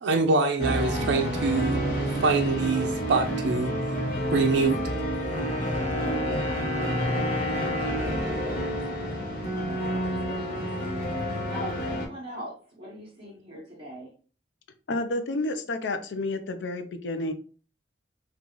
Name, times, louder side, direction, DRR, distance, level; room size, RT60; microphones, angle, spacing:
voice 1, 0.0-1.8 2.2-3.7 4.3-4.8, right 3 dB, 75° right, 0.4 m, -24 dB
sound 1, 0.6-12.1, right 1 dB, 50° left, 1.0 m, -29 dB
Wind instrument woodwind instrument, 4.2-10.0, left 5 dB, 30° left, 0.7 m, -36 dB
voice 2, 5.6-6.7 7.6-8.9 9.6-10.7 11.5-14.1, equal, 30° right, 0.9 m, -42 dB
voice 3, 14.9-17.3, left 2 dB, 75° left, 0.5 m, -30 dB
3.8 x 2.3 x 2.9 m
head